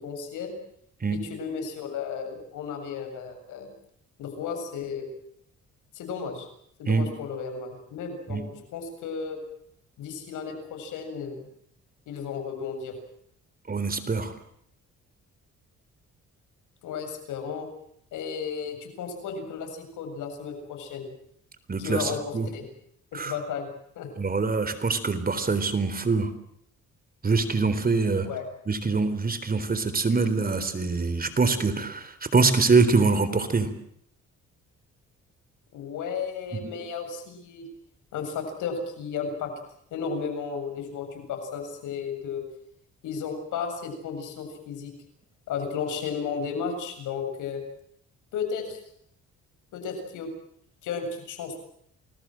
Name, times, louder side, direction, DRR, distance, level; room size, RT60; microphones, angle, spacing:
voice 1, 0.0-0.5 1.1-3.7 4.2-5.1 5.9-6.5 6.8-9.4 10.0-11.5 12.1-12.9 16.8-17.7 18.1-21.1 21.8-22.7 23.1-23.7 24.0-24.1 28.2-28.4 35.7-37.7 38.1-39.5 39.9-42.4 43.0-44.9 45.5-47.6 48.3-48.8 49.7-50.3 50.8-51.6, left 6 dB, 85° left, 6 dB, 7.4 m, -34 dB
voice 2, 13.7-14.3 21.7-22.5 23.1-23.3 24.2-26.3 27.2-28.3 28.7-33.7 36.6-36.7, right 4 dB, 30° right, 12 dB, 4.0 m, -24 dB
29.0 x 21.0 x 7.7 m, 0.69 s
cardioid pair, 90°, 30 cm